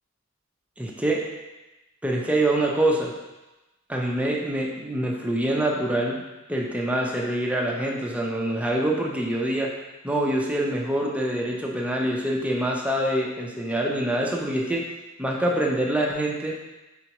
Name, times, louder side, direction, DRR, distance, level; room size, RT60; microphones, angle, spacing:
voice 1, 0.8-1.3 2.0-3.1 3.9-6.2 6.5-9.7 10.0-14.8 15.2-16.6, right 1 dB, 5° right, -2 dB, 0.5 m, -25 dB
4.6 x 3.8 x 3.0 m, 1.1 s
head